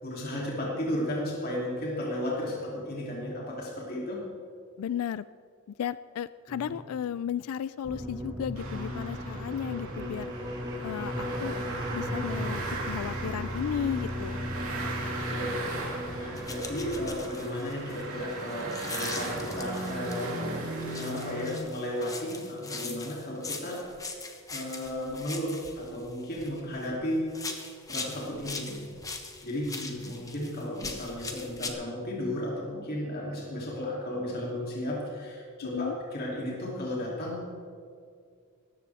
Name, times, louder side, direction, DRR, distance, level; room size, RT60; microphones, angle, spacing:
voice 1, 0.0-4.2 6.5-6.7 15.2-15.6 16.1-23.9 24.5-27.5 27.9-28.8 29.4-37.4, left 1 dB, 45° left, -4 dB, 2.9 m, -34 dB
voice 2, 4.8-5.3 5.8-10.3 10.8-11.6 11.9-14.5 35.6-35.9, left 8 dB, 85° left, 16 dB, 0.3 m, -34 dB
moaning monks, 7.8-17.1, equal, 20° right, 1.6 m, -36 dB
sound 1, 8.6-21.6, right 2 dB, 75° right, 3.3 m, -37 dB
sound 2, 16.4-20.4 20.8-26.9 27.3-31.7, left 3 dB, 15° left, 1.1 m, -41 dB
18.0 x 14.5 x 3.5 m, 2.3 s
head